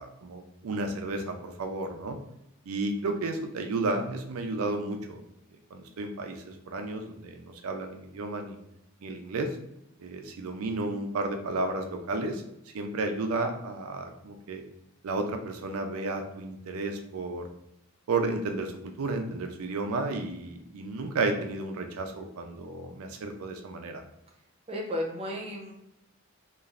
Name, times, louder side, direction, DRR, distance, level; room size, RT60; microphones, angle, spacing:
voice 1, 0.0-2.2 2.7-5.2 5.7-8.6 9.0-9.5 10.0-12.4 12.7-14.6 15.0-17.5 18.1-18.7 19.0-24.0, right 2 dB, 85° right, 5 dB, 0.4 m, -32 dB
voice 2, 24.7-25.7, left 1 dB, 25° right, -1 dB, 0.6 m, -33 dB
3.0 x 2.4 x 2.4 m, 0.81 s
head